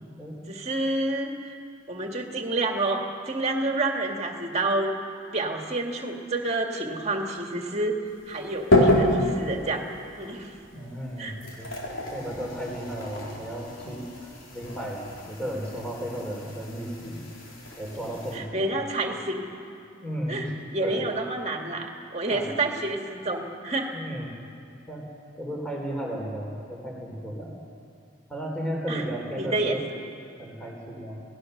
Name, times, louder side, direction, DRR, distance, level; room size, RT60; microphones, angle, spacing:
voice 1, 0.5-1.3 1.9-5.0 5.3-8.0 8.3-9.8 10.2-10.5 11.2-11.3 18.3-19.5 20.3-23.9 28.9-29.0 29.4-30.0, right 2 dB, 30° right, 2 dB, 2.1 m, -29 dB
sound 1, 8.1-18.4, left 1 dB, 70° left, 4.1 m, -29 dB
voice 2, 10.7-11.8 12.1-17.2 17.8-18.7 20.0-20.5 20.8-21.0 22.2-22.5 23.9-24.4 24.9-25.1 25.4-27.6 28.3-29.8 30.4-31.2, equal, 5° left, -2 dB, 3.6 m, -34 dB
29.0 x 18.5 x 6.7 m, 2.4 s
head